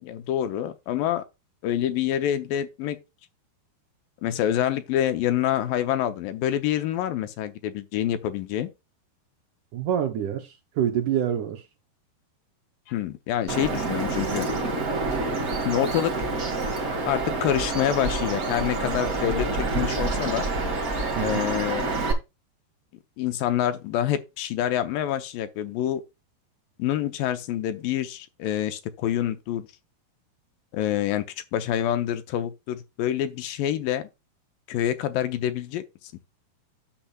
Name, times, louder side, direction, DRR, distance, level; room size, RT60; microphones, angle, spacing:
voice 1, 0.0-1.2 1.6-3.0 4.2-8.7 12.9-14.5 15.7-16.1 17.1-20.5 21.2-21.9 23.2-26.0 26.8-29.7 30.7-31.3 31.5-34.1 34.7-35.8, left 11 dB, 75° left, 2.3 m, -27 dB
voice 2, 9.7-11.6 21.2-21.4, right 9 dB, 75° right, 1.9 m, -26 dB
Bird vocalization bird call bird song, 13.5-22.1, right 3 dB, 50° right, 1.0 m, -27 dB
10.0 x 6.9 x 2.4 m
omnidirectional pair, 4.5 m